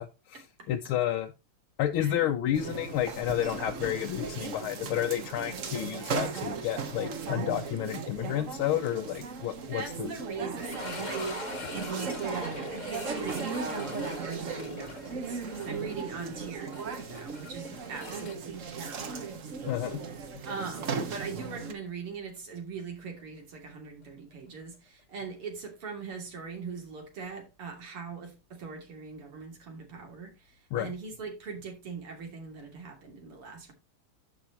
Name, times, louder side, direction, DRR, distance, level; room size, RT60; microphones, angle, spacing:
voice 1, 0.0-1.3 1.8-10.1 19.6-20.0 30.7-30.9, left 12 dB, 75° left, 1.5 m, -31 dB
voice 2, 2.0-2.3 9.7-15.4 15.6-19.8 20.4-33.7, right 5 dB, 90° right, 3.7 m, -41 dB
sound 1, 2.5-21.7, right 5 dB, 45° right, 1.2 m, -37 dB
sound 2, 10.6-19.5 19.8-19.9 20.5-20.6 23.2-23.3, left 2 dB, 35° left, 0.8 m, -42 dB
10.5 x 7.2 x 2.9 m
omnidirectional pair, 2.4 m